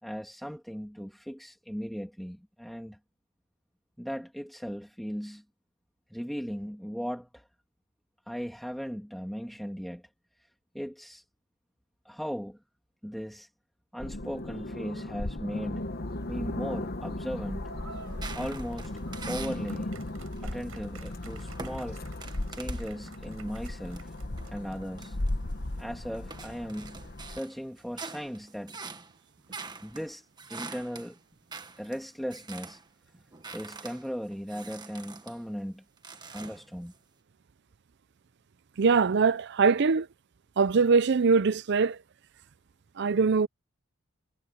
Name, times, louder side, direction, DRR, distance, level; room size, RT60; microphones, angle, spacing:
voice 1, 0.0-3.0 4.0-5.4 6.1-7.5 8.3-10.0 10.7-11.2 12.0-12.6 13.0-13.5 13.9-15.9 16.3-17.7 18.3-18.9 19.3-19.9 20.4-22.0 22.5-24.1 24.5-25.2 25.8-28.8 29.8-31.2 31.8-32.8 33.5-35.8 36.3-36.9, equal, ahead, 2.2 m, -37 dB
sound 1, 14.0-27.4, left 1 dB, 45° left, 1.1 m, -36 dB
sound 2, 17.6-25.0, right 5 dB, 75° right, 6.3 m, -52 dB
sound 3, 18.1-19.7 20.2-22.9 23.5-25.8 26.1-32.9 33.1-35.4 36.0-37.0, right 4 dB, 20° right, 1.4 m, -45 dB
voice 2, 38.8-40.1 40.6-42.0 43.0-43.5, right 5 dB, 55° right, 0.5 m, -22 dB
head